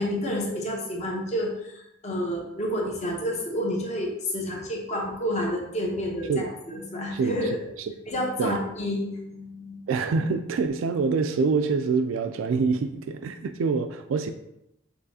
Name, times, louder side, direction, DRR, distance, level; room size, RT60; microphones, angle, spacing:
voice 1, 0.0-7.6 8.1-9.8, equal, 35° left, 0 dB, 0.8 m, -29 dB
voice 2, 7.1-7.9 8.4-8.6 9.9-14.3, right 4 dB, 80° right, 7 dB, 0.3 m, -26 dB
6.3 x 2.7 x 2.7 m, 0.83 s
head